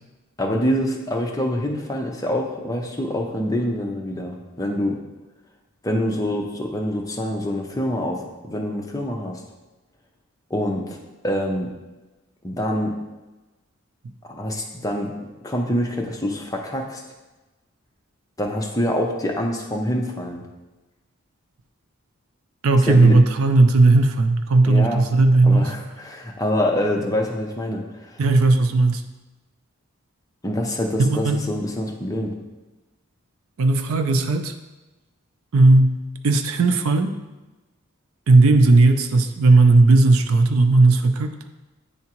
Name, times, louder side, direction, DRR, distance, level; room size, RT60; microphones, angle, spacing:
voice 1, 0.4-5.0 5.8-9.4 10.5-11.0 11.2-11.7 12.4-12.9 14.3-15.1 15.4-17.0 18.4-20.5 22.8-23.2 24.7-25.0 25.4-28.2 30.4-32.3, equal, 15° left, 1 dB, 0.6 m, -25 dB
voice 2, 22.6-25.7 28.2-29.0 31.0-31.4 33.6-34.5 35.5-37.2 38.3-41.3, right 3 dB, 70° right, 7 dB, 0.5 m, -16 dB
9.5 x 3.5 x 3.0 m, 1.1 s
head